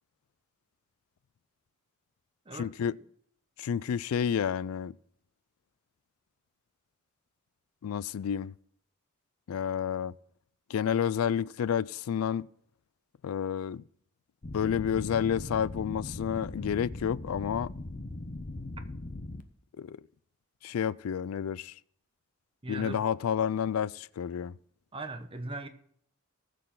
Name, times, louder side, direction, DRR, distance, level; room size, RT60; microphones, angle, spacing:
voice 1, 2.5-3.0 3.6-4.9 7.8-8.5 9.5-10.1 10.7-12.5 13.2-13.8 14.5-17.7 19.8-20.0 20.6-21.7 22.7-24.5, left 8 dB, 85° left, 0.4 m, -30 dB
sound 1, 14.4-19.4, left 2 dB, 40° left, 0.8 m, -40 dB
voice 2, 22.6-23.0 24.9-25.7, right 2 dB, 25° right, 1.0 m, -39 dB
19.5 x 6.6 x 3.9 m
head